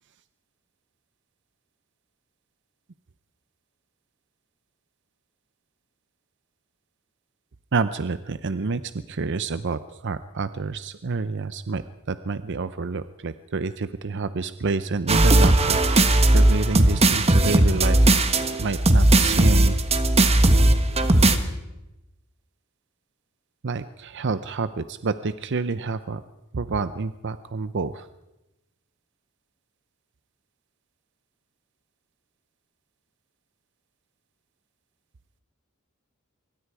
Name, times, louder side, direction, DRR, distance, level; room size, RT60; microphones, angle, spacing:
voice 1, 7.7-8.8 9.1-11.8 12.1-18.1 18.6-19.8 23.6-26.2 26.5-28.1, right 4 dB, 60° right, 12 dB, 0.7 m, -28 dB
sound 1, 15.1-21.4, right 1 dB, 30° right, 1.5 m, -17 dB
25.0 x 23.0 x 4.9 m, 0.99 s
head